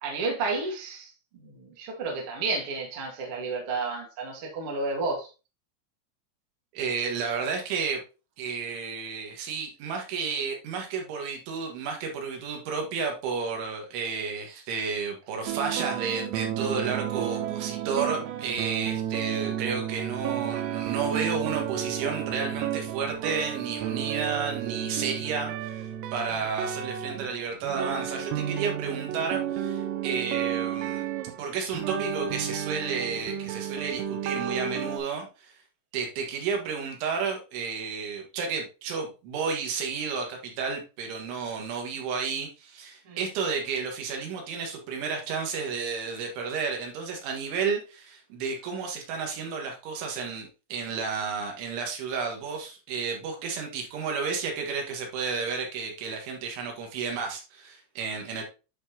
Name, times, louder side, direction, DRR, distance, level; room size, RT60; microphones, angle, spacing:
voice 1, 0.0-5.3 43.0-43.2, right 3 dB, 55° right, 1.5 m, -32 dB
voice 2, 6.7-8.0 8.4-31.1 31.4-35.5 35.9-58.4, right 5 dB, 70° right, 3.8 m, -32 dB
sound 1, 15.5-35.0, right 10 dB, 90° right, 3.5 m, -32 dB
11.0 x 4.4 x 2.8 m
omnidirectional pair, 5.8 m